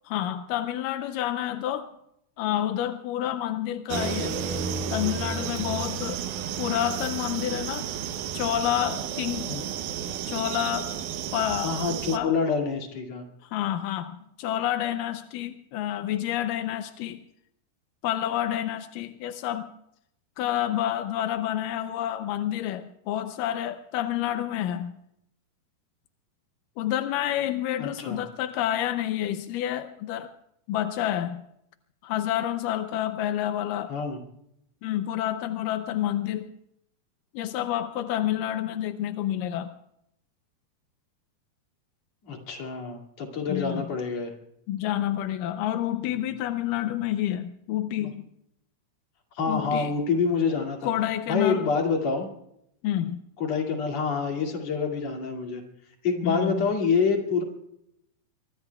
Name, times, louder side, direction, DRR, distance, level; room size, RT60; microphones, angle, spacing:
voice 1, 0.1-1.9 2.4-4.4 4.9-6.2 6.6-7.9 8.3-9.5 10.3-10.9 11.3-11.7 12.1-12.4 13.4-17.2 18.0-19.7 20.4-25.0 26.8-30.3 30.7-31.4 32.0-33.9 34.8-36.5 37.3-39.7 43.5-43.9 44.7-48.3 49.5-49.9 50.8-51.7 52.8-53.2 56.2-56.7, left 12 dB, 80° left, 9 dB, 1.9 m, -29 dB
sound 1, 3.9-12.2, right 7 dB, 70° right, 2.0 m, -32 dB
voice 2, 11.6-13.2 27.8-28.2 33.9-34.2 42.2-44.3 46.1-46.3 48.0-48.1 49.4-50.9 51.3-52.3 53.4-55.6 56.0-57.4, left 5 dB, 45° left, 1 dB, 3.3 m, -27 dB
24.5 x 23.5 x 2.3 m, 0.77 s
omnidirectional pair, 4.5 m